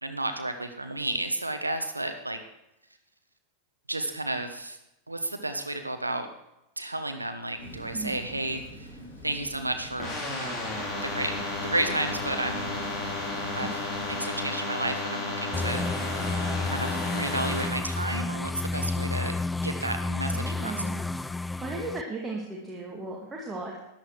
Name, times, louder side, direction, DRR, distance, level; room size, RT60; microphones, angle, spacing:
voice 1, 0.0-2.4 3.9-4.8 5.1-6.3 6.8-8.9 9.2-10.5 11.1-11.3 11.6-12.8 13.6-13.7 14.1-16.4 16.7-19.3 19.6-20.8, right 2 dB, 85° right, 7 dB, 1.1 m, -32 dB
Rain, 7.6-14.2, equal, 70° left, 5.9 m, -44 dB
sound 1, 10.0-17.7, left 2 dB, 30° left, 4.1 m, -33 dB
sound 2, 15.5-22.0, left 3 dB, 10° left, 0.3 m, -31 dB
voice 2, 20.3-21.0 21.6-23.8, right 2 dB, 15° right, -2 dB, 2.0 m, -36 dB
13.5 x 10.5 x 4.6 m, 0.90 s
figure-of-eight pair, 90°, 0 cm